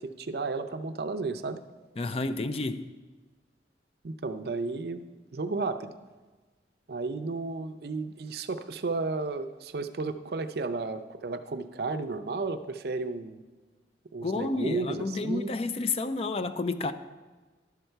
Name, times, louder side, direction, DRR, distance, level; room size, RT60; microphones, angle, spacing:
voice 1, 0.0-1.6 4.0-5.0 5.3-5.9 6.9-13.4 14.1-15.5, right 3 dB, 60° right, 0.5 m, -33 dB
voice 2, 2.0-2.9 14.2-16.9, left 3 dB, 35° left, 0.4 m, -30 dB
11.5 x 6.6 x 4.5 m
head